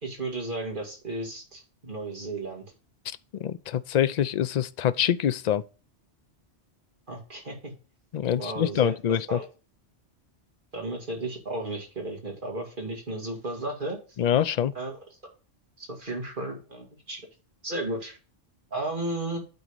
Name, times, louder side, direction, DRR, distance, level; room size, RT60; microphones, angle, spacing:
voice 1, 0.0-2.6 7.1-7.7 8.4-8.9 9.3-9.5 10.7-14.0 14.7-15.0 15.8-17.2 17.6-18.2 18.7-19.4, right 2 dB, 45° right, 2.5 m, -34 dB
voice 2, 3.3-5.6 8.1-9.4 14.2-14.7, left 9 dB, 60° left, 0.4 m, -25 dB
9.2 x 4.1 x 5.1 m
omnidirectional pair, 1.2 m